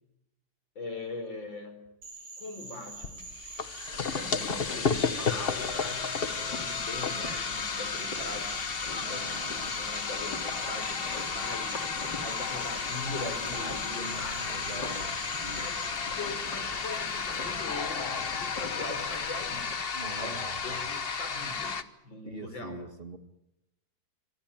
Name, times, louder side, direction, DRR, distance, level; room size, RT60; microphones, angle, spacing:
voice 1, 0.8-1.8 2.4-3.3 4.2-8.6 8.9-11.0 11.3-11.8 12.1-14.8 15.6-18.0 18.3-19.8 20.2-21.8 22.0-22.8, left 3 dB, 90° left, 7 dB, 5.4 m, -41 dB
Frog, 2.0-15.9, right 3 dB, 85° right, 4.7 m, -45 dB
sound 1, 3.0-21.8, left 5 dB, 35° left, 1.1 m, -33 dB
sound 2, 3.9-19.8, left 3 dB, 65° left, 4.0 m, -44 dB
voice 2, 9.0-9.7 13.1-15.7 19.9-20.9 22.2-23.2, right 2 dB, 30° right, 7 dB, 2.1 m, -43 dB
25.5 x 19.0 x 9.0 m, 0.87 s
omnidirectional pair, 2.0 m